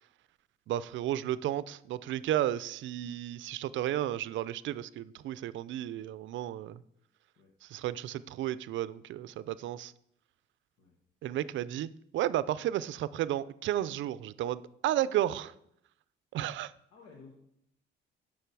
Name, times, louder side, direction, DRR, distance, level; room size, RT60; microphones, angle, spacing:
voice 1, 0.7-6.8 7.6-9.9 11.2-15.5 16.3-16.7, right 12 dB, 75° right, 0.4 m, -33 dB
voice 2, 16.9-17.4, left 4 dB, 90° left, 1.4 m, -53 dB
10.0 x 6.3 x 4.7 m
cardioid pair, 90°, 20 cm